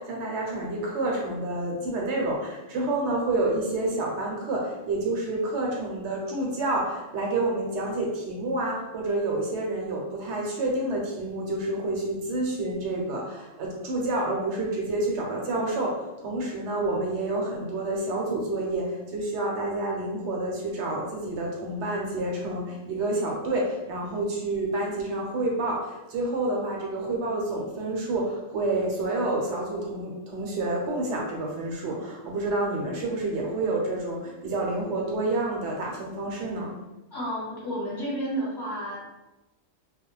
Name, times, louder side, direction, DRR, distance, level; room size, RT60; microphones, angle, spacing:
voice 1, 0.0-36.7, right 2 dB, 70° right, -1 dB, 0.9 m, -29 dB
voice 2, 37.1-39.0, right 1 dB, 20° left, -10 dB, 1.2 m, -31 dB
2.4 x 2.1 x 3.1 m, 1.0 s
omnidirectional pair, 1.3 m